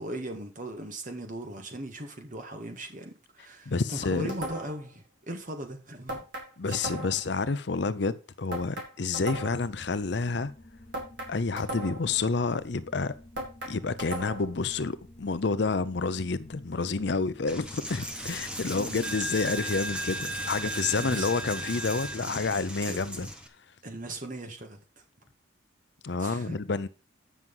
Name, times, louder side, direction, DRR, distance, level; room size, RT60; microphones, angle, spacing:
voice 1, 0.0-6.2 6.7-6.9 18.7-19.1 21.0-21.3 22.9-23.0 23.8-24.8 26.2-26.6, right 1 dB, 40° right, 1.9 m, -39 dB
voice 2, 3.7-4.3 6.6-10.5 11.3-13.1 13.7-23.3 26.0-26.9, left 4 dB, 60° left, 0.6 m, -29 dB
sound 1, 4.3-4.9 6.1-7.3 8.5-9.7 10.9-12.2 13.4-14.6, right 1 dB, 65° right, 4.0 m, -37 dB
sound 2, 9.2-21.1, left 1 dB, 25° left, 0.9 m, -51 dB
Coin (dropping), 17.5-23.5, right 1 dB, 5° right, 1.2 m, -35 dB
9.5 x 6.1 x 5.5 m
head